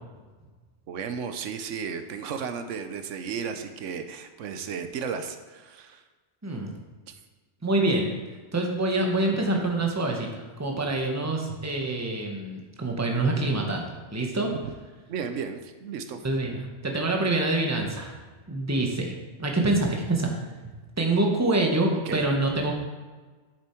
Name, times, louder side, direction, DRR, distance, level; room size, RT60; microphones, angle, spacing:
voice 1, 0.9-6.0 15.1-16.2 22.0-22.3, right 6 dB, 85° right, 8 dB, 1.0 m, -34 dB
voice 2, 6.4-6.7 7.6-8.1 8.5-14.5 16.2-16.6 16.8-18.1 18.5-19.1 19.4-20.3 21.0-22.7, right 2 dB, 15° right, 1 dB, 1.0 m, -26 dB
7.8 x 7.0 x 4.4 m, 1.3 s
omnidirectional pair, 1.2 m